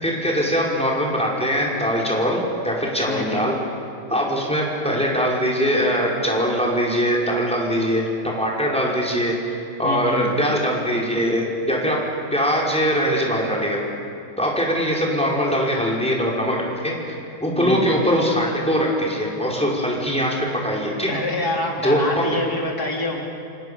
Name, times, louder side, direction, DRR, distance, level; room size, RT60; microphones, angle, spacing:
voice 1, 0.0-3.5 4.1-12.0 12.3-13.8 14.4-16.9 17.4-21.1 21.8-22.3, equal, 5° left, -3 dB, 5.4 m, -22 dB
voice 2, 3.1-3.5 9.8-10.4 17.6-17.9 21.1-23.2, left 2 dB, 50° left, -1 dB, 4.3 m, -26 dB
28.0 x 27.5 x 7.3 m, 2.5 s
omnidirectional pair, 2.2 m